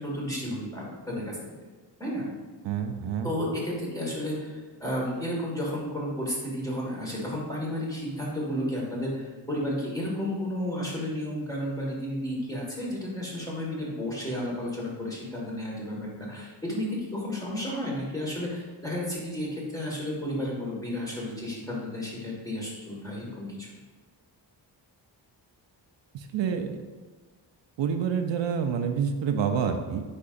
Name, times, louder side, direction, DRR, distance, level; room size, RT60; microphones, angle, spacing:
voice 1, 0.0-1.6 2.0-2.2 3.2-23.7, left 1 dB, 10° left, -4 dB, 1.7 m, -32 dB
voice 2, 2.6-3.3 26.1-26.8 27.8-30.0, right 7 dB, 75° right, 6 dB, 0.7 m, -28 dB
8.5 x 5.3 x 2.6 m, 1.4 s
wide cardioid pair, 155°, 44 cm